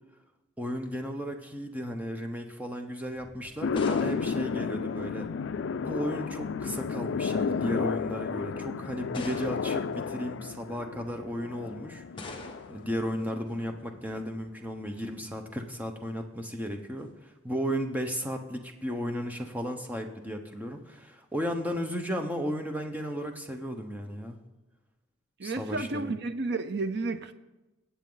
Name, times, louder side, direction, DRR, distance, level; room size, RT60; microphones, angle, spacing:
voice 1, 0.6-5.3 5.8-24.4 25.4-26.1, equal, 10° right, 4 dB, 1.0 m, -34 dB
sound 1, 3.2-5.5 6.5-7.0 7.8-7.9 9.1-9.9 12.2-12.9, left 2 dB, 25° left, 1.4 m, -44 dB
sound 2, 3.6-14.0, left 5 dB, 60° left, 0.4 m, -32 dB
voice 2, 25.4-27.3, right 3 dB, 55° right, 10 dB, 0.6 m, -31 dB
21.5 x 8.2 x 3.9 m, 1.1 s
head